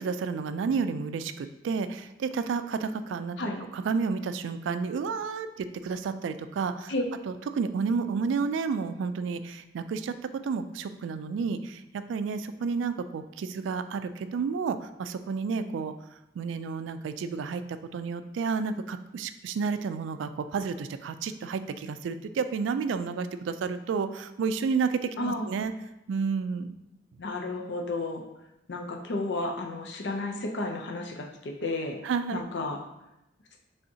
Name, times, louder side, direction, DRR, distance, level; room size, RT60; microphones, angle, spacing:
voice 1, 0.0-3.4 3.7-6.9 7.3-11.8 12.1-15.9 16.4-17.6 17.9-25.7 26.1-26.8 32.0-32.4, right 5 dB, 80° right, 10 dB, 0.3 m, -31 dB
voice 2, 25.2-25.6 27.2-28.2 28.7-32.0 32.3-32.8, left 2 dB, 65° left, 2 dB, 0.6 m, -32 dB
5.5 x 3.4 x 2.7 m, 0.90 s
head